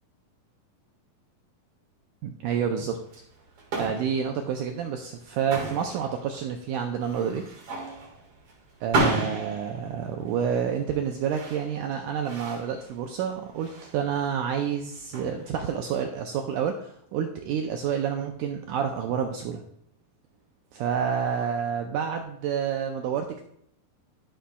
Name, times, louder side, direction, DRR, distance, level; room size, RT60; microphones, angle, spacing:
voice 1, 2.2-3.0 3.7-7.4 8.8-19.6 20.7-23.4, right 7 dB, 85° right, 4 dB, 1.8 m, -29 dB
sound 1, 3.0-16.0, right 2 dB, 45° right, 2.1 m, -34 dB
13.0 x 6.1 x 2.3 m, 0.70 s
omnidirectional pair, 4.3 m